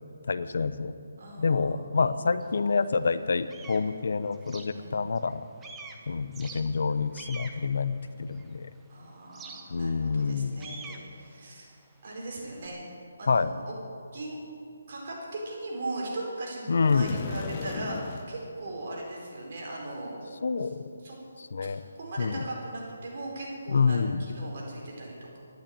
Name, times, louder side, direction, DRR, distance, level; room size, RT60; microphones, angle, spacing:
voice 1, 0.2-0.9 1.4-5.4 6.1-8.7 9.7-10.6 13.3-13.5 16.7-17.2 20.4-20.8 21.5-21.8 22.2-22.4 23.7-24.2, left 4 dB, 60° left, 13 dB, 0.8 m, -27 dB
voice 2, 1.2-2.2 4.7-5.0 8.9-11.7 12.0-13.7 14.1-14.4 14.9-20.7 21.0-21.2 21.6-25.4, right 2 dB, 40° right, -3 dB, 4.3 m, -39 dB
sound 1, 2.4-2.5 3.0-5.3 5.6-8.7 9.3-12.7, right 4 dB, 10° right, 0.9 m, -47 dB
sound 2, 16.8-18.3, left 5 dB, 25° left, 1.0 m, -36 dB
13.5 x 11.5 x 8.8 m, 2.5 s
hypercardioid pair, 170°, 0 cm